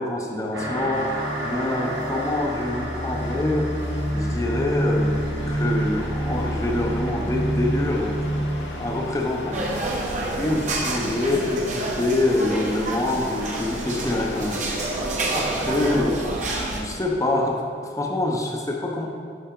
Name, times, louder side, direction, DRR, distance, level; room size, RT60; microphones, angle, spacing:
voice 1, 0.0-3.7 4.1-8.2 8.7-9.7 10.2-14.6 15.3-19.1, left 1 dB, 20° left, 1 dB, 0.7 m, -26 dB
sound 1, 0.5-11.5, equal, 75° right, 1.7 m, -28 dB
sound 2, 0.9-15.1, left 2 dB, 75° left, 1.1 m, -38 dB
sound 3, 9.5-16.8, right 2 dB, 45° right, 1.1 m, -28 dB
10.0 x 5.7 x 3.8 m, 2.2 s
head